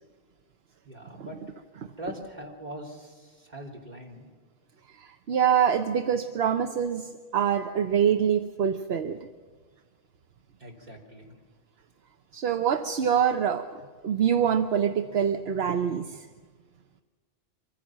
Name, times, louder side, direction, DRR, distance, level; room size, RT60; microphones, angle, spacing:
voice 1, 0.9-1.4 2.0-4.3 10.6-11.4, equal, 45° right, -2 dB, 3.4 m, -42 dB
voice 2, 5.0-7.1 7.3-9.2 12.3-13.7 14.0-16.2, right 8 dB, 75° right, 7 dB, 1.0 m, -25 dB
24.5 x 15.5 x 7.4 m, 1.5 s
omnidirectional pair, 1.1 m